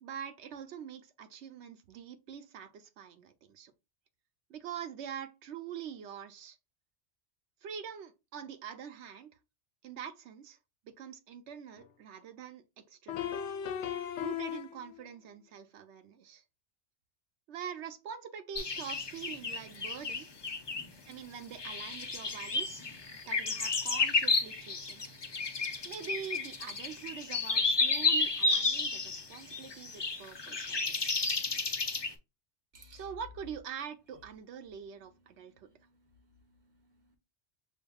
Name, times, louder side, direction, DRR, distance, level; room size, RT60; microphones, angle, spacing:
voice 1, 0.0-3.7 4.5-6.6 7.6-9.4 9.8-10.6 10.9-13.3 14.2-16.4 17.5-20.3 21.1-22.8 23.3-25.0 25.8-31.2 32.9-35.7, right 8 dB, 80° right, 0.9 m, -44 dB
sound 1, 11.8-11.9 13.1-15.1, left 9 dB, 80° left, 0.9 m, -37 dB
sound 2, 18.5-20.9 21.6-32.1, left 3 dB, 45° left, 0.3 m, -31 dB
voice 2, 32.7-33.1 35.4-37.2, left 1 dB, 45° right, 0.9 m, -61 dB
6.8 x 2.5 x 2.3 m
omnidirectional pair, 1.2 m